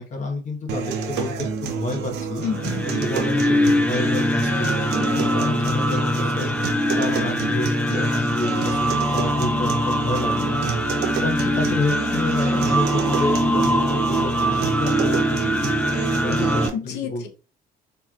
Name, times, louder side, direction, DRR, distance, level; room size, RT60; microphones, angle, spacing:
voice 1, 0.0-2.4 3.0-6.5 6.9-15.7 16.2-17.3, left 2 dB, 45° left, 2 dB, 1.2 m, -30 dB
sound 1, 0.7-16.7, right 6 dB, 85° right, 0.8 m, -28 dB
voice 2, 2.4-3.0 16.7-17.3, left 7 dB, 85° left, 6 dB, 0.8 m, -30 dB
sound 2, 2.4-16.7, left 1 dB, 10° left, 0.4 m, -23 dB
4.3 x 3.3 x 2.4 m, 0.34 s
cardioid pair, 110°, 17 cm